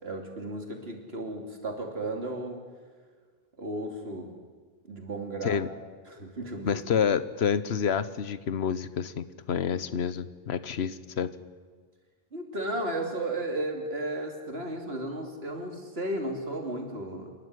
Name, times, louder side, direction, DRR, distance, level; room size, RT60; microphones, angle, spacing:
voice 1, 0.0-2.7 3.6-4.3 4.9-5.6 6.1-6.8 12.3-17.3, right 1 dB, 75° right, 3 dB, 3.2 m, -34 dB
voice 2, 6.6-11.3, left 7 dB, 85° left, 14 dB, 1.2 m, -28 dB
28.0 x 12.0 x 9.8 m, 1.5 s
omnidirectional pair, 1.1 m